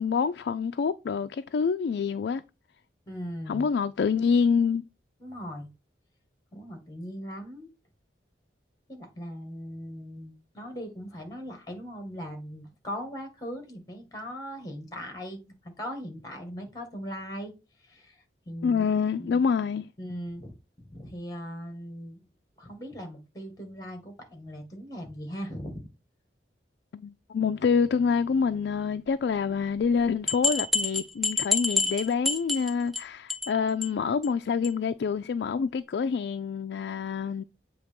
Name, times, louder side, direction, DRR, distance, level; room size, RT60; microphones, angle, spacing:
voice 1, 0.0-2.4 3.5-4.8 18.6-19.9 26.9-37.4, left 6 dB, 70° left, 0.3 m, -26 dB
voice 2, 3.1-3.6 5.2-5.7 6.5-7.7 8.9-17.5 17.8-19.4 20.0-22.3 22.6-25.9, equal, 20° left, 1.7 m, -39 dB
sound 1, 29.8-29.9 30.3-33.0 33.3-33.5 33.8-33.9 34.2-34.3 34.6-34.7, left 3 dB, ahead, 0.6 m, -27 dB
7.9 x 2.9 x 5.2 m
head